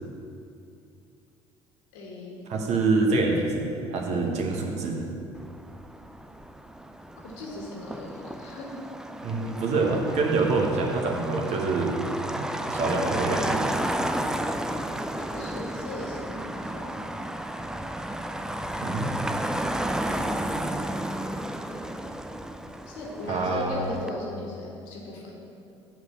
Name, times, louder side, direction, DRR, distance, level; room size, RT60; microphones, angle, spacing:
voice 1, 1.9-2.3 4.1-4.4 7.2-8.7 15.2-16.9 22.9-25.3, left 2 dB, 65° left, -3 dB, 1.8 m, -37 dB
voice 2, 2.5-5.0 9.2-12.0 12.3-13.6 18.8-19.1 23.3-23.8, right 3 dB, 50° right, 1 dB, 1.3 m, -26 dB
Motor vehicle (road), 5.3-24.1, right 1 dB, 5° right, 0.4 m, -32 dB
7.8 x 4.9 x 7.2 m, 2.7 s
figure-of-eight pair, 55°, 15 cm